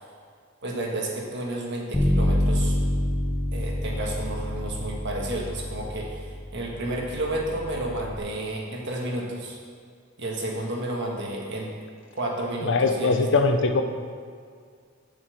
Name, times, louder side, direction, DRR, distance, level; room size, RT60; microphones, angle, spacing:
voice 1, 0.6-2.7 3.5-6.3 6.5-9.6 10.2-11.7 12.2-13.3, right 1 dB, 55° right, -1 dB, 1.6 m, -31 dB
Bass guitar, 1.9-8.2, left 1 dB, 5° left, 1.1 m, -27 dB
voice 2, 12.6-13.8, left 3 dB, 60° left, 6 dB, 0.7 m, -21 dB
7.8 x 5.8 x 7.0 m, 2.1 s
head